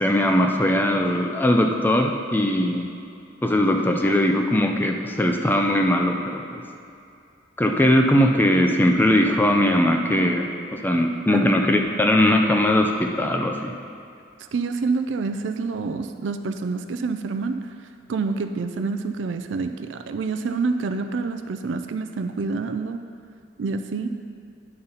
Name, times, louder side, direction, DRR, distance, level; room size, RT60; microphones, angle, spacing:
voice 1, 0.0-2.9 3.4-6.4 7.6-13.7, left 1 dB, 10° left, 3 dB, 0.5 m, -20 dB
voice 2, 14.5-17.6 18.1-23.0 23.6-24.1, right 4 dB, 75° right, 7 dB, 0.4 m, -27 dB
9.6 x 4.0 x 5.6 m, 2.5 s
head